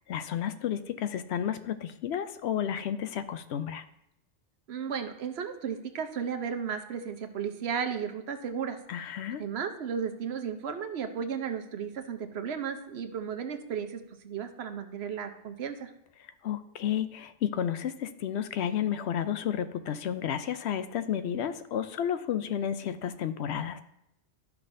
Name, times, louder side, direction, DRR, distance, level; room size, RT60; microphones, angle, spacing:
voice 1, 0.1-3.8 8.9-9.4 16.4-23.8, left 9 dB, 75° left, 11 dB, 0.8 m, -32 dB
voice 2, 4.7-8.8 9.4-15.9, right 7 dB, 70° right, 7 dB, 1.0 m, -34 dB
12.0 x 5.8 x 2.6 m, 0.82 s
omnidirectional pair, 1.1 m